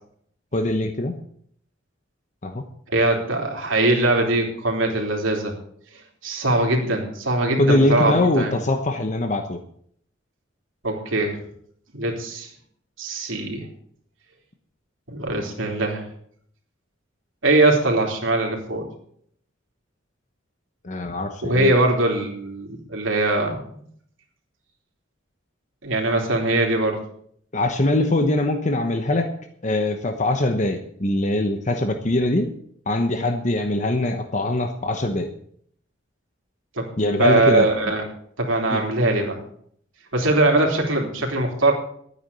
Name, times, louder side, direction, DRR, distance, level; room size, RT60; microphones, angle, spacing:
voice 1, 0.5-1.1 2.4-2.6 7.6-9.6 20.8-21.7 27.5-29.3 29.6-32.5 32.9-35.3 37.0-37.7 38.7-38.8, left 1 dB, 40° left, 6 dB, 1.0 m, -22 dB
voice 2, 2.9-5.5 6.2-8.5 10.8-11.4 11.9-12.5 13.0-13.7 15.1-16.0 17.4-18.8 21.4-23.8 25.8-27.0 36.8-36.9 37.2-38.1 38.4-39.4 40.1-41.7, right 2 dB, 85° right, 1 dB, 3.4 m, -21 dB
12.5 x 9.4 x 6.9 m, 0.66 s
head